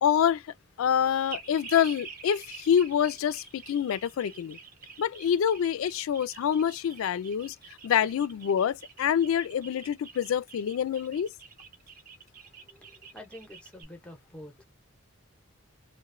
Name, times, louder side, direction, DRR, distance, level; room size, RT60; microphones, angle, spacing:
voice 1, 0.0-0.4 0.8-4.6 5.0-7.6 7.8-11.3, left 8 dB, 80° left, 0.3 m, -26 dB
sound 1, 1.3-13.8, right 5 dB, 40° right, 0.5 m, -47 dB
voice 2, 12.6-14.7, left 1 dB, 5° left, 0.6 m, -47 dB
3.0 x 2.1 x 2.4 m
head